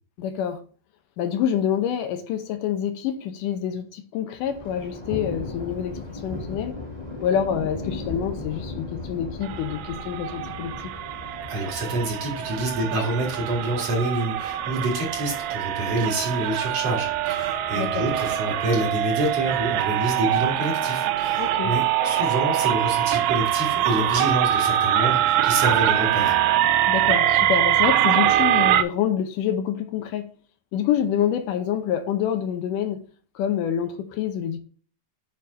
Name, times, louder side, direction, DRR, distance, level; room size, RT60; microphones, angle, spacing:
voice 1, 0.2-0.6 1.2-6.8 7.2-10.7 17.8-18.1 21.4-21.7 26.9-30.3 30.7-33.0 33.4-34.6, left 9 dB, 80° left, 2.4 m, -27 dB
Thunder, 4.4-20.3, left 3 dB, 15° left, 1.3 m, -38 dB
sound 1, 9.4-28.8, right 11 dB, 90° right, 2.3 m, -23 dB
voice 2, 11.5-26.4, right 1 dB, 50° right, 3.0 m, -27 dB
8.8 x 4.0 x 4.0 m
omnidirectional pair, 3.8 m